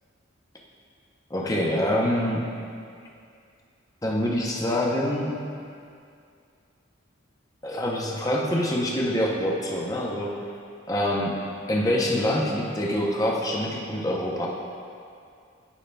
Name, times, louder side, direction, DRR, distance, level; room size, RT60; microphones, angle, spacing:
voice 1, 1.3-2.4 4.0-5.4 7.6-10.3 10.9-11.4 11.7-14.5, left 1 dB, 15° left, -2 dB, 0.6 m, -25 dB
9.9 x 5.4 x 2.2 m, 2.4 s
head